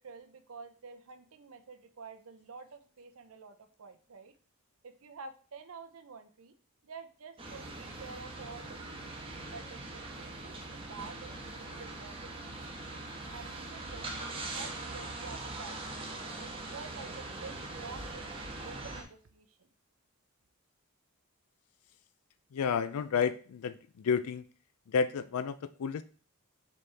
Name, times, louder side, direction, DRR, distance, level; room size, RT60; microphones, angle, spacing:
voice 1, 0.0-4.3 4.8-6.5 6.8-9.0 9.5-12.6 13.3-16.0 16.4-19.7, right 4 dB, 70° right, 8 dB, 0.6 m, -49 dB
sound 1, 7.4-19.0, right 2 dB, 25° right, 1.1 m, -42 dB
voice 2, 22.5-24.4 24.9-26.0, left 6 dB, 80° left, 13 dB, 0.4 m, -31 dB
7.0 x 4.3 x 3.3 m, 0.40 s
head